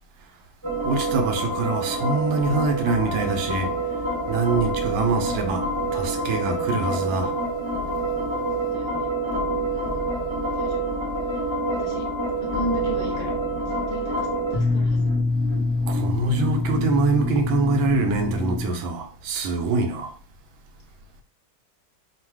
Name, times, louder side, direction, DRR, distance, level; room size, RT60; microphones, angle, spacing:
sound 1, 0.6-18.6, equal, 20° right, 0.8 m, -26 dB
voice 1, 0.8-3.7 4.3-5.6 5.9-7.3 15.9-20.1, right 3 dB, 75° right, 1.4 m, -24 dB
voice 2, 8.6-9.1 9.7-9.9 10.5-10.8 11.8-12.1 12.5-13.3 13.7-15.0, left 1 dB, 25° left, 0.8 m, -34 dB
3.7 x 2.3 x 4.5 m
omnidirectional pair, 2.3 m